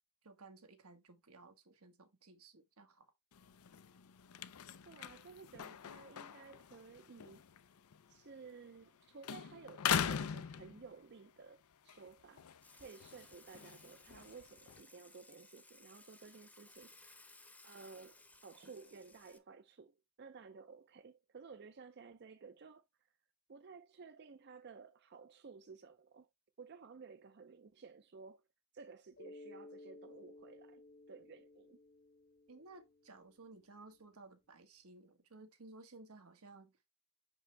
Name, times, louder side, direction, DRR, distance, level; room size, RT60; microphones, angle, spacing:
voice 1, 0.2-3.1 32.5-36.7, right 3 dB, 85° right, 1.4 m, -57 dB
sound 1, 3.3-9.0 9.2-11.3 11.7-14.8, left 8 dB, 90° left, 0.5 m, -42 dB
voice 2, 4.8-7.4 8.1-12.4 12.7-17.2 17.6-22.8 23.5-26.3 26.6-28.4 28.7-30.8 31.1-31.8, right 5 dB, 50° right, 0.5 m, -55 dB
Water / Water tap faucet / Sink (filling or washing), 12.6-19.4, left 2 dB, 5° left, 0.7 m, -61 dB
Mallet percussion, 29.2-33.6, left 2 dB, 45° left, 0.8 m, -57 dB
6.2 x 5.4 x 3.3 m
head